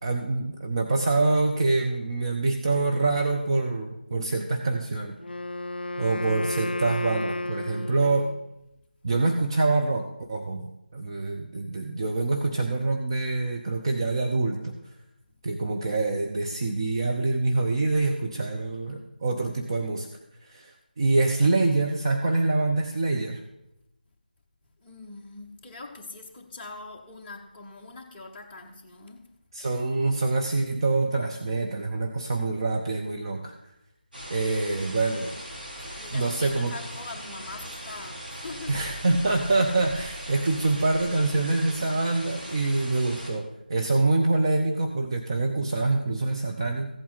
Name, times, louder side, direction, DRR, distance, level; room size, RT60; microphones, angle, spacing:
voice 1, 0.0-5.2 6.0-8.3 9.0-14.8 15.4-20.1 20.4-23.4 29.5-33.6 34.3-35.3 36.1-36.7 38.7-46.9, right 3 dB, 30° right, 0.8 m, -25 dB
Wind instrument woodwind instrument, 5.2-8.5, left 2 dB, 80° left, 0.4 m, -33 dB
voice 2, 24.8-29.3 35.8-38.8, left 3 dB, 10° left, 0.8 m, -43 dB
sound 1, 34.1-43.3, equal, 60° right, 3.8 m, -39 dB
15.0 x 8.4 x 4.1 m
figure-of-eight pair, 160°, 5 cm